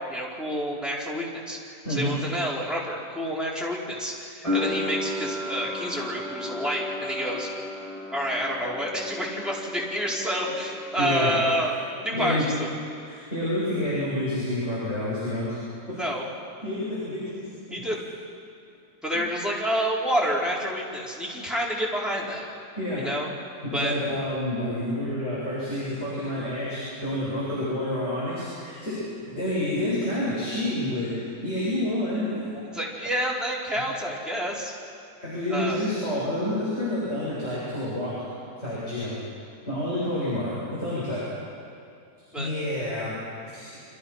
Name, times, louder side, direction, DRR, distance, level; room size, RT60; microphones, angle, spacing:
voice 1, 0.0-7.5 8.1-12.7 16.0-16.3 17.7-18.0 19.0-22.5 23.0-23.3 23.7-23.9 32.7-34.7 35.5-35.9 42.3-42.5, equal, ahead, -5 dB, 4.8 m, -29 dB
sound 1, 4.4-11.2 11.5-12.4, left 2 dB, 20° left, 7.4 m, -34 dB
voice 2, 11.0-11.3 11.6-11.7 12.1-12.4 13.0-15.5 15.9-16.0 16.6-17.2 17.7-17.8 19.1-19.2 22.8-23.0 23.7-31.1 31.4-32.6 35.2-38.1 38.6-39.2 39.7-41.3 42.3-43.2 43.4-43.7, left 1 dB, 40° left, -9 dB, 8.4 m, -28 dB
29.5 x 26.5 x 5.9 m, 2.5 s
omnidirectional pair, 1.9 m